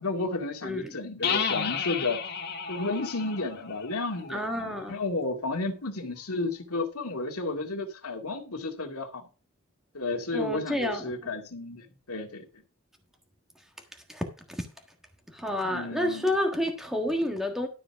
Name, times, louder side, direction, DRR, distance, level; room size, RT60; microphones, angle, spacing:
voice 1, 0.0-2.2 2.7-9.3 9.9-12.5 15.5-16.3, left 3 dB, 85° left, 2.2 m, -32 dB
voice 2, 0.6-1.0 4.3-5.0 10.3-11.3 14.1-14.7 15.3-17.7, left 1 dB, ahead, 1.4 m, -30 dB
sound 1, 1.2-4.9, left 6 dB, 45° left, 1.5 m, -33 dB
12.5 x 5.0 x 5.8 m
head